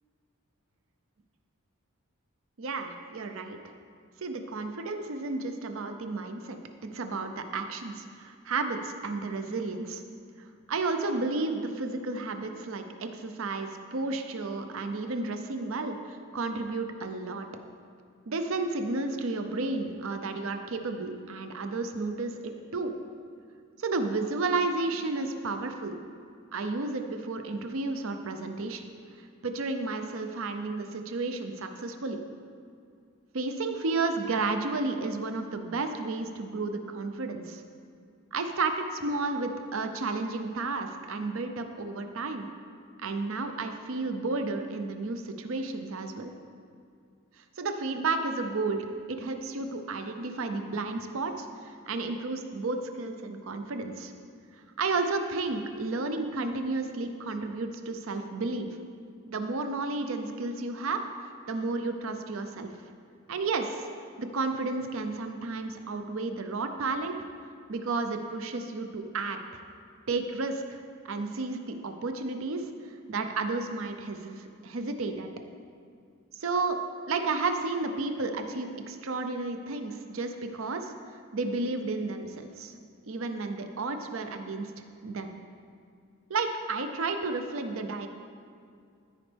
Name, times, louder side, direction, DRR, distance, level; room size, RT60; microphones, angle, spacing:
voice 1, 2.6-3.6 4.2-6.6 6.9-10.0 10.4-17.5 18.3-22.9 23.8-26.0 26.5-28.8 29.2-32.2 33.3-37.6 38.3-42.5 43.0-46.3 47.4-54.1 54.8-58.8 59.3-61.0 61.5-62.7 63.3-63.9 64.2-67.2 67.7-69.4 70.1-72.7 73.1-75.3 76.3-76.8 77.1-80.9 81.3-82.7 83.1-84.7 85.0-85.4 86.3-88.1, right 3 dB, 65° right, 6 dB, 0.6 m, -32 dB
13.5 x 5.2 x 3.4 m, 2.3 s
head